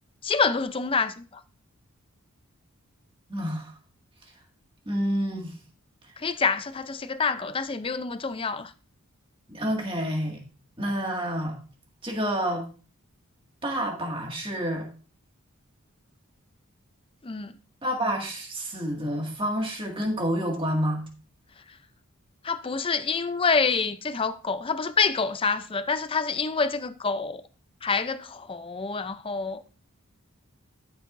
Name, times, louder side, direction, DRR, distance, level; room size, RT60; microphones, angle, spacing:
voice 1, 0.2-1.4 6.2-8.7 17.2-17.5 22.4-27.4 27.8-29.6, left 4 dB, 25° left, 0.5 m, -27 dB
voice 2, 3.3-3.7 4.9-5.5 9.5-10.4 10.8-11.6 12.0-12.6 13.6-14.9 17.8-21.1, equal, 25° right, 2.0 m, -28 dB
13.0 x 8.0 x 2.6 m
head